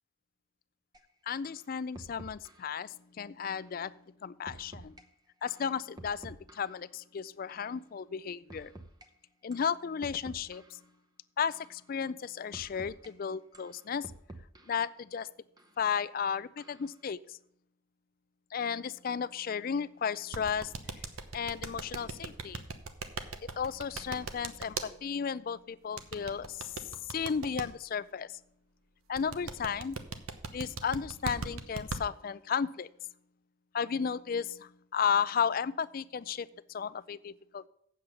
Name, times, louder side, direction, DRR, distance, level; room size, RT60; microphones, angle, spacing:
sound 1, 0.9-1.0 1.4-1.6 1.9-2.7 3.5-3.7 4.5-5.0 5.5-6.9 7.5-7.7 8.5-9.1 9.5-9.7 10.0-10.9 11.5-11.8 12.5-13.1 13.5-14.9 15.6-15.7 16.6-16.9, right 1 dB, 20° right, 0.7 m, -50 dB
voice 1, 1.3-5.0 5.4-8.7 9.4-10.8 11.4-14.1 14.7-15.3 15.8-17.4 18.5-20.7 21.3-22.6 23.4-26.8 27.1-28.3 29.1-30.0 30.5-32.9 33.7-37.7, left 7 dB, 45° left, 17 dB, 0.3 m, -34 dB
sound 2, 20.3-24.9 26.0-27.6 29.2-32.0, right 4 dB, 90° right, 1.0 m, -38 dB
8.5 x 7.2 x 6.7 m, 0.72 s
head